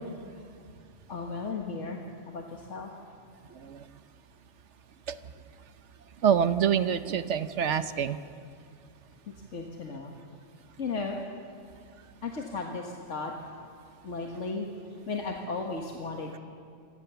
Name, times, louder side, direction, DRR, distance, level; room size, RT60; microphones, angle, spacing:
voice 1, 1.1-2.0 2.3-2.9 9.5-10.1 10.8-11.2 12.2-13.3 14.0-14.7 15.1-16.4, left 4 dB, 80° left, 1 dB, 2.0 m, -35 dB
voice 2, 6.2-8.2, right 8 dB, 75° right, 11 dB, 1.2 m, -26 dB
28.0 x 23.0 x 7.0 m, 2.3 s
omnidirectional pair, 1.2 m